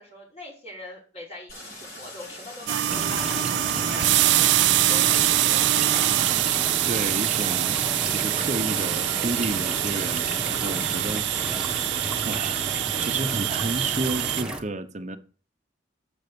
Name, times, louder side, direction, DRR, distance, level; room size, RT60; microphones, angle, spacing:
voice 1, 0.0-6.1, left 1 dB, 35° left, 5.5 m, -42 dB
Stream, 1.5-12.4, left 1 dB, 55° left, 7.0 m, -42 dB
sound 1, 2.7-14.4, right 15 dB, 70° right, 0.4 m, -24 dB
sound 2, 2.9-14.6, right 1 dB, 5° right, 1.6 m, -33 dB
voice 2, 6.8-7.8 8.1-11.9 12.2-15.2, right 2 dB, 40° right, 1.0 m, -32 dB
8.0 x 7.0 x 7.0 m
head